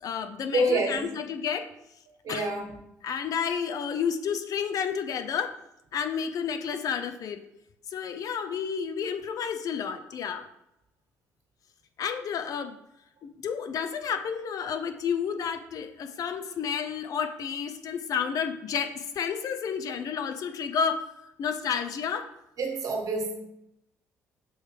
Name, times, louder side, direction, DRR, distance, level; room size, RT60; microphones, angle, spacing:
voice 1, 0.0-1.7 2.3-2.5 3.0-5.5 5.9-7.4 7.9-10.5 12.0-12.8 13.2-21.1 21.4-22.3, left 7 dB, 55° left, 0.6 m, -31 dB
voice 2, 0.5-1.1 2.2-2.8 22.6-23.4, right 1 dB, 50° right, 1.5 m, -27 dB
6.3 x 3.2 x 4.6 m
hypercardioid pair, 50°, 7 cm